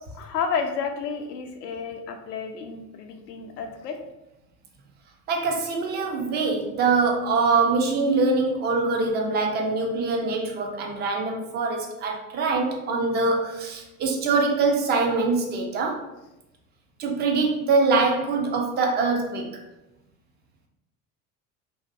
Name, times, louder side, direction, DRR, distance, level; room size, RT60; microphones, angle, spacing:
voice 1, 0.1-4.0, left 6 dB, 80° left, 5 dB, 0.5 m, -31 dB
voice 2, 5.3-16.0 17.0-19.5, right 3 dB, 25° right, 1 dB, 0.3 m, -24 dB
2.6 x 2.5 x 2.5 m, 0.95 s
figure-of-eight pair, 70°, 48 cm